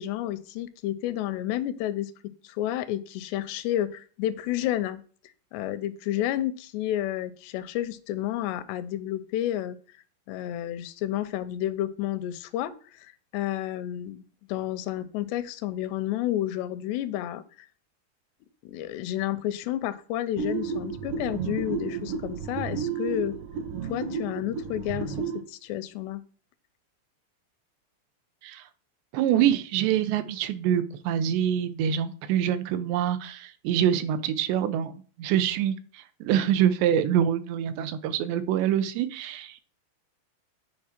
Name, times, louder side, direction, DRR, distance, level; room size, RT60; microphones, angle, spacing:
voice 1, 0.0-2.1 2.4-5.0 5.5-9.8 10.3-14.2 14.5-17.7 18.6-23.4 23.8-26.2, left 13 dB, 85° left, 14 dB, 2.7 m, -31 dB
sound 1, 20.4-25.4, right 6 dB, 65° right, 2.4 m, -32 dB
voice 2, 29.1-34.9 35.2-39.6, right 10 dB, 85° right, 11 dB, 2.9 m, -25 dB
9.8 x 4.8 x 4.3 m, 0.41 s
omnidirectional pair, 4.8 m